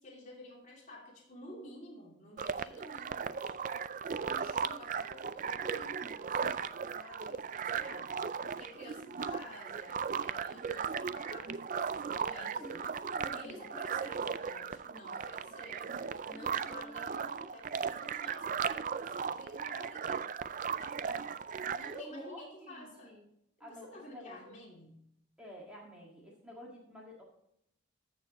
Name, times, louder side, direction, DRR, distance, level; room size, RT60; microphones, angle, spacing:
voice 1, 0.0-3.6 4.2-8.2 8.6-13.0 13.3-15.9 16.3-20.3 20.7-21.0 21.6-23.2 23.6-25.1, left 1 dB, 40° left, -1 dB, 2.7 m, -51 dB
sound 1, 2.4-22.0, right 6 dB, 40° right, 0.3 m, -37 dB
voice 2, 12.3-14.1 16.3-17.5 21.1-21.3 21.9-23.2 23.6-24.6 25.4-27.2, equal, 5° right, -3 dB, 1.7 m, -50 dB
14.5 x 6.6 x 3.0 m, 0.75 s
head